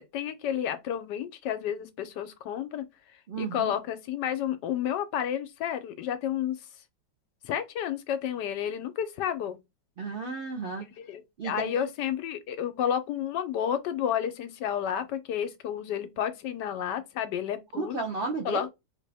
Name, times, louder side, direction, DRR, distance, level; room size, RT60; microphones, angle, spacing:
voice 1, 0.0-2.9 3.4-6.6 7.4-9.6 11.0-18.0 18.4-18.7, left 9 dB, 75° left, 1.2 m, -31 dB
voice 2, 3.3-3.7 10.0-10.9 11.4-11.9 17.7-18.7, right 4 dB, 75° right, 0.5 m, -33 dB
4.0 x 2.9 x 3.4 m
omnidirectional pair, 2.0 m